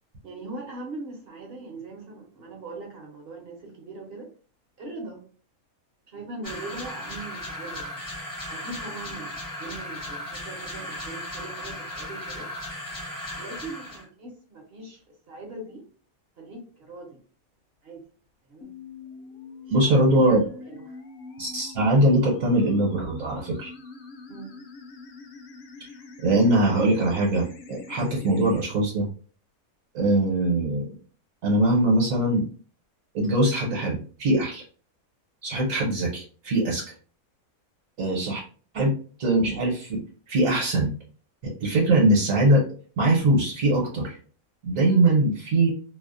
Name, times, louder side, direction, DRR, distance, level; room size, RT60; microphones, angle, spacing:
voice 1, 0.2-4.3 4.8-5.2 6.1-8.0 8.5-12.5 13.4-15.8 16.4-17.2 17.8-18.0 18.5-18.7 19.7-21.0 24.3-24.6 38.0-38.2 44.9-45.0, right 2 dB, 55° right, 0 dB, 0.8 m, -41 dB
sound 1, 6.4-14.1, left 1 dB, 30° left, 0.3 m, -36 dB
sound 2, 18.6-28.6, left 3 dB, 65° left, 0.7 m, -44 dB
voice 2, 19.7-20.4 21.4-23.7 26.2-29.1 29.9-31.0 31.4-32.5 33.1-34.6 35.4-36.8 38.0-38.4 38.7-40.9 41.4-42.7 43.0-44.2 44.6-45.7, right 1 dB, 70° right, -3 dB, 1.2 m, -22 dB
2.6 x 2.0 x 2.4 m, 0.41 s
omnidirectional pair, 1.5 m